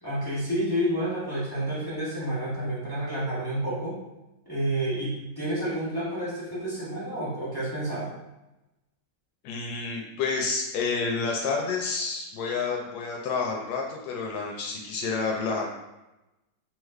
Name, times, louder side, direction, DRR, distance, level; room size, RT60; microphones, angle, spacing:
voice 1, 0.0-4.0 4.5-8.1, right 1 dB, 25° left, -9 dB, 0.5 m, -29 dB
voice 2, 9.4-15.7, left 4 dB, 90° left, -1 dB, 1.3 m, -29 dB
3.0 x 2.4 x 3.2 m, 0.98 s
omnidirectional pair, 1.9 m